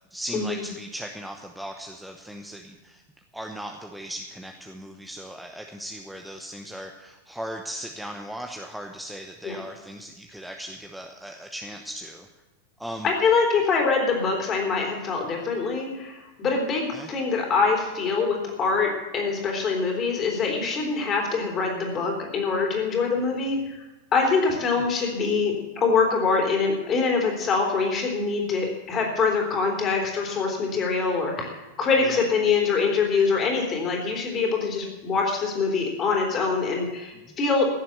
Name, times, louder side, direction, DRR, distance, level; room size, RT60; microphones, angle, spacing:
voice 1, 0.1-3.0 3.3-12.3 12.8-13.1 16.9-17.1 24.7-24.8 32.0-32.2 37.1-37.4, equal, ahead, 3 dB, 0.9 m, -38 dB
voice 2, 13.0-23.8 24.1-37.6, left 4 dB, 30° left, 1 dB, 3.7 m, -24 dB
15.5 x 7.5 x 7.9 m, 1.1 s
figure-of-eight pair, 90°, 0 cm